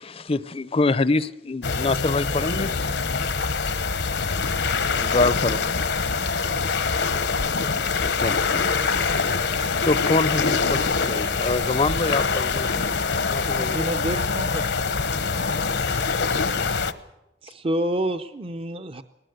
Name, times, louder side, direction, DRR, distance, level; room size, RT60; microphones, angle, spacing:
voice 1, 0.0-2.7 4.2-4.3 4.8-5.7 8.0-9.1 9.8-12.7 13.3-13.9, left 3 dB, 35° left, 0.6 m, -25 dB
sound 1, 1.6-16.9, left 4 dB, 75° left, 1.1 m, -24 dB
voice 2, 6.1-9.8, right 2 dB, 85° right, 5.7 m, -47 dB
voice 3, 13.6-14.6 15.9-16.1 17.4-19.0, right 1 dB, 30° right, 0.7 m, -28 dB
19.5 x 19.0 x 8.1 m
head